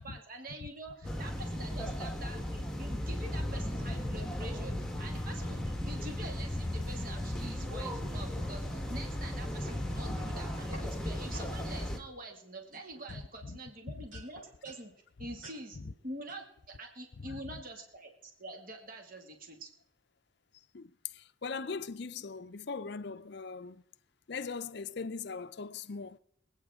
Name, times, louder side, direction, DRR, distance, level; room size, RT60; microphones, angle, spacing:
voice 1, 0.0-14.9 15.2-19.7, right 2 dB, 45° right, 2.2 m, -46 dB
sound 1, 1.0-12.0, left 1 dB, 5° left, 1.4 m, -36 dB
sound 2, 9.7-10.9 11.3-11.5 12.2-12.4 12.7-13.7 14.1-14.9 15.4-15.6 16.3-16.4, right 1 dB, 70° right, 6.4 m, -52 dB
voice 2, 21.1-23.8 24.3-26.2, left 4 dB, 55° left, 0.5 m, -40 dB
25.0 x 9.0 x 3.6 m
head